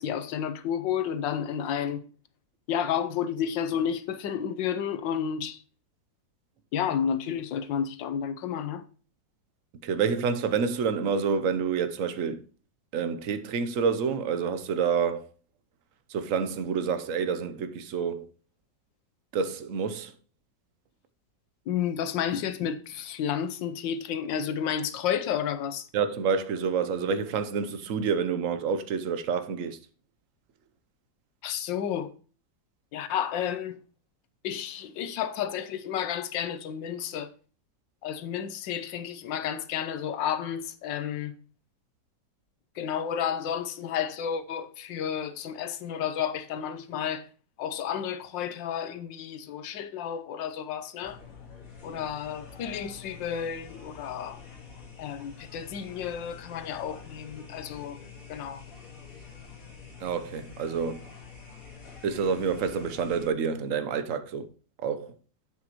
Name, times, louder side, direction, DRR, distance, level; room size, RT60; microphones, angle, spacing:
voice 1, 0.0-2.0 2.7-5.6 6.7-8.8 21.7-25.8 31.4-32.1 32.9-33.8 34.4-37.3 38.0-41.3 42.8-47.3 47.6-51.2 51.8-54.4 55.0-58.0 58.3-58.6, left 8 dB, 85° left, 1.5 m, -31 dB
voice 2, 9.8-12.4 12.9-15.3 16.1-18.3 19.3-20.1 25.9-29.8 60.0-61.0 62.0-64.5 64.8-65.1, right 6 dB, 55° right, 1.0 m, -28 dB
sound 1, 51.0-63.3, left 6 dB, 50° left, 2.2 m, -47 dB
7.8 x 7.5 x 3.0 m
omnidirectional pair, 1.9 m